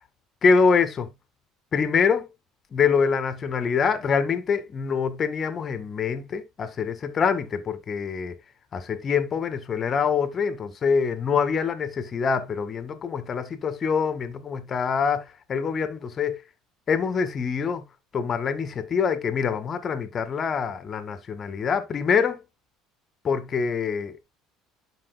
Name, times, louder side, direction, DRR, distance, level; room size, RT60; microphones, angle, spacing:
voice 1, 0.4-1.1 1.7-2.2 2.7-8.3 8.7-15.2 15.5-16.4 16.9-17.8 18.1-22.4 23.2-24.2, left 6 dB, 40° left, 1.9 m, -25 dB
12.5 x 5.4 x 2.2 m
supercardioid pair, 80°, 0 cm